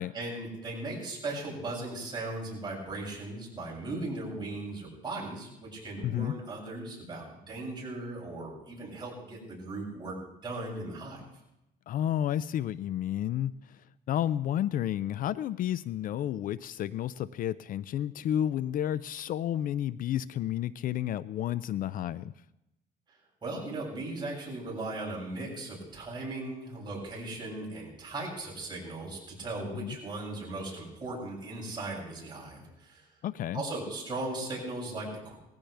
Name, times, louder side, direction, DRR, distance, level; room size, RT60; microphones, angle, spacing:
voice 1, 0.1-10.2 10.4-11.2 23.4-33.1 33.5-35.4, right 2 dB, 25° right, -4 dB, 7.4 m, -38 dB
voice 2, 6.0-6.3 11.9-22.3 29.7-30.0 33.2-33.6, left 11 dB, 55° left, 17 dB, 0.4 m, -31 dB
20.0 x 15.5 x 3.4 m, 0.88 s
cardioid pair, 110°, 17 cm